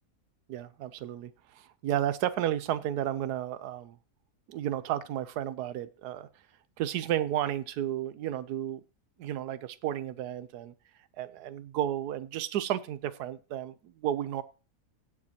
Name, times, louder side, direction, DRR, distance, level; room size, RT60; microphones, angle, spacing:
voice 1, 0.5-1.3 1.8-4.0 4.5-6.3 6.8-8.8 9.2-10.7 11.2-13.7 14.0-14.4, right 11 dB, 90° right, 1.2 m, -32 dB
16.5 x 7.4 x 2.8 m
omnidirectional pair, 1.6 m